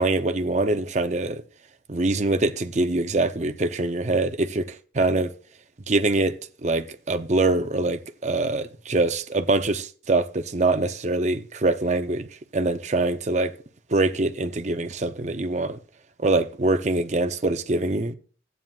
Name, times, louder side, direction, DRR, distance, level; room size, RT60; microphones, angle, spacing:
voice 1, 0.0-1.4 1.9-5.3 5.9-6.4 6.6-12.3 12.5-13.5 13.9-15.8 16.2-18.1, right 2 dB, 40° right, 0.6 m, -24 dB
15.0 x 9.1 x 2.4 m
head